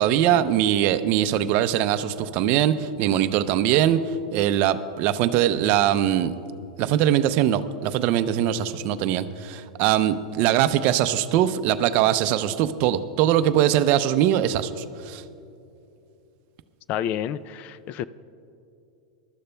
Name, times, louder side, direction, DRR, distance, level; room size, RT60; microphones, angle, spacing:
voice 1, 0.0-6.4 6.8-15.2, right 11 dB, 50° right, 12 dB, 0.5 m, -22 dB
voice 2, 16.9-18.0, left 10 dB, 40° left, 17 dB, 0.3 m, -29 dB
22.5 x 13.0 x 2.2 m, 2.6 s
supercardioid pair, 130°, 4 cm